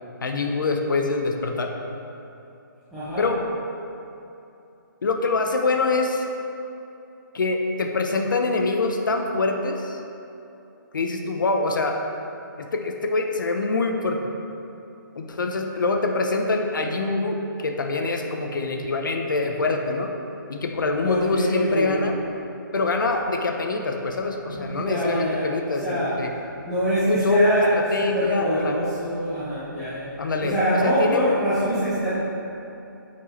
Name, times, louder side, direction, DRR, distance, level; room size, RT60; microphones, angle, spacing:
voice 1, 0.2-1.7 3.2-3.4 5.0-6.2 7.3-10.0 10.9-12.0 12.6-14.2 15.2-20.1 20.5-22.2 22.7-26.3 27.1-28.7 30.2-31.2, left 3 dB, 70° left, 3 dB, 0.8 m, -24 dB
voice 2, 2.9-3.3 21.0-22.0 24.5-26.2 26.7-32.2, equal, ahead, -15 dB, 0.4 m, -25 dB
8.6 x 4.6 x 4.2 m, 2.9 s
hypercardioid pair, 180°, 11 cm